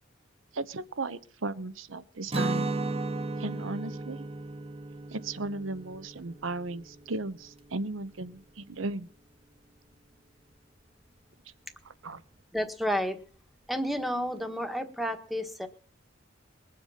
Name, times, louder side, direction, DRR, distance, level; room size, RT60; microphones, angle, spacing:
voice 1, 0.5-2.7 3.4-4.3 5.1-9.1 11.8-12.2, right 2 dB, 85° right, 14 dB, 1.0 m, -36 dB
Guitar, 2.3-8.1, right 2 dB, 30° right, 1.2 m, -35 dB
voice 2, 12.5-13.2 13.7-15.7, equal, ahead, 6 dB, 1.5 m, -31 dB
21.5 x 7.8 x 5.8 m, 0.43 s
head